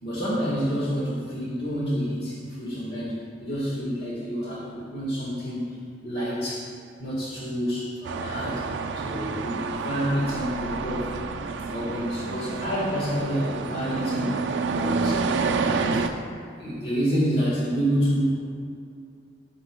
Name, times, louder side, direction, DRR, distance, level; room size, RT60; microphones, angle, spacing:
voice 1, 0.0-5.7 6.0-6.7 7.0-8.7 8.9-11.4 11.7-14.4 14.7-15.3 15.5-16.1 16.6-18.4, equal, 60° left, -6 dB, 1.5 m, -28 dB
sound 1, 8.0-16.1, right 4 dB, 75° right, 0.4 m, -29 dB
10.5 x 6.2 x 2.2 m, 2.4 s
head